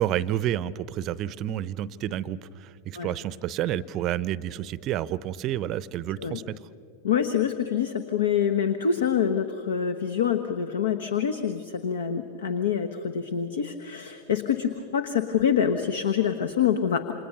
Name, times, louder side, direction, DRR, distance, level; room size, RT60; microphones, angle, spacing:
voice 1, 0.0-6.6, right 12 dB, 35° right, 19 dB, 0.7 m, -29 dB
voice 2, 7.0-17.1, left 8 dB, 65° left, 9 dB, 1.1 m, -26 dB
28.5 x 27.0 x 6.8 m, 2.6 s
figure-of-eight pair, 90°, 0 cm